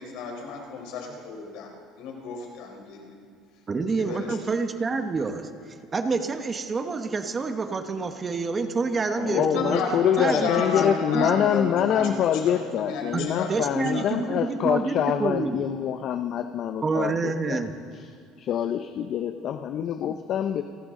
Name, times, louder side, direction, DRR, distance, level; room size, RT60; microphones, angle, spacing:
voice 1, 0.0-1.7 2.0-3.1 4.0-4.4 9.3-14.1, left 4 dB, 75° left, 1 dB, 4.0 m, -31 dB
voice 2, 3.7-9.8 10.2-10.8 11.1-11.3 13.1-15.6 16.8-17.7, right 4 dB, 25° right, 7 dB, 1.1 m, -28 dB
voice 3, 9.2-17.6 18.4-20.6, left 9 dB, 50° left, 8 dB, 0.6 m, -25 dB
29.0 x 11.5 x 3.8 m, 2.4 s
cardioid pair, 120°, 0 cm